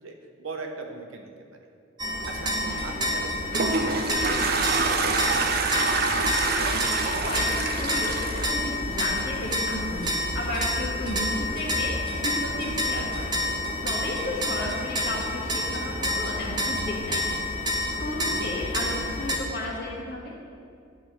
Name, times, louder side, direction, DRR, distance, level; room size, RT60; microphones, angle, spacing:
voice 1, 0.0-1.3 2.3-5.5, right 3 dB, 85° right, 3 dB, 0.9 m, -40 dB
sound 1, 2.0-19.4, left 1 dB, 20° right, 0.8 m, -29 dB
voice 2, 2.5-2.9 6.7-12.0 12.2-13.3 13.8-17.4 18.0-20.3, left 1 dB, 50° left, -2 dB, 1.4 m, -33 dB
Toilet flush, 3.2-9.5, right 4 dB, 50° right, 0.5 m, -26 dB
sound 2, 4.1-12.1, equal, 20° left, 1.2 m, -41 dB
10.0 x 3.3 x 5.9 m, 2.4 s
head